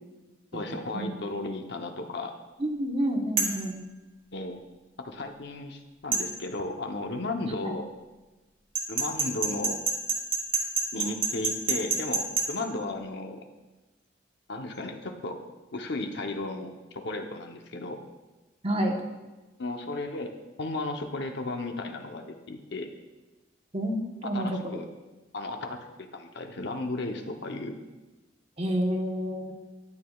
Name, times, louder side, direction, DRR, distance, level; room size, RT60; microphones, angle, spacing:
voice 1, 0.5-2.3 4.3-4.6 5.0-7.9 8.9-9.9 10.9-13.5 14.5-15.4 15.7-18.0 19.6-22.9 24.3-24.9 25.3-27.8, left 2 dB, 65° left, 5 dB, 0.8 m, -34 dB
voice 2, 2.6-3.8 7.6-7.7 18.6-19.0 23.7-24.8 28.6-29.5, equal, 35° right, 2 dB, 1.0 m, -29 dB
sound 1, 3.4-3.6 6.1-6.3 8.7-12.5, right 4 dB, 50° right, 1.5 m, -26 dB
12.5 x 8.6 x 2.3 m, 1.2 s
head